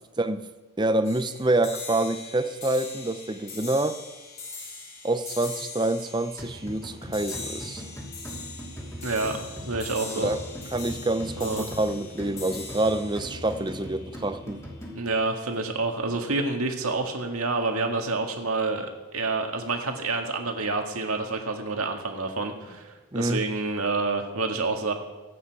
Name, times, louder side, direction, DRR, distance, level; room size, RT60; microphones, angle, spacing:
voice 1, 0.8-4.0 5.0-7.8 10.1-10.4 10.7-14.6 23.1-23.4, right 2 dB, 20° right, 10 dB, 0.6 m, -27 dB
sound 1, 1.0-14.5, left 3 dB, 30° left, 4.7 m, -41 dB
sound 2, 6.4-15.3, equal, 15° left, 2.7 m, -40 dB
voice 2, 9.0-9.4 9.6-10.3 11.4-11.7 15.0-24.9, right 3 dB, 75° right, 3 dB, 2.0 m, -28 dB
25.0 x 8.7 x 4.8 m, 1.2 s
head